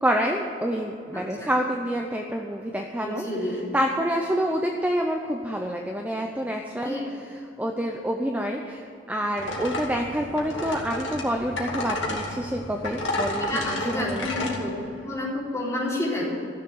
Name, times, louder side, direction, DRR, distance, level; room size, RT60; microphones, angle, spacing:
voice 1, 0.0-14.5, equal, 10° right, 2 dB, 0.7 m, -28 dB
voice 2, 1.1-1.5 3.0-3.6 6.8-7.1 13.4-14.7 15.0-16.3, left 1 dB, 15° left, -6 dB, 3.9 m, -30 dB
sound 1, 9.4-14.6, left 1 dB, 70° left, 2.5 m, -31 dB
14.5 x 7.3 x 9.5 m, 2.7 s
head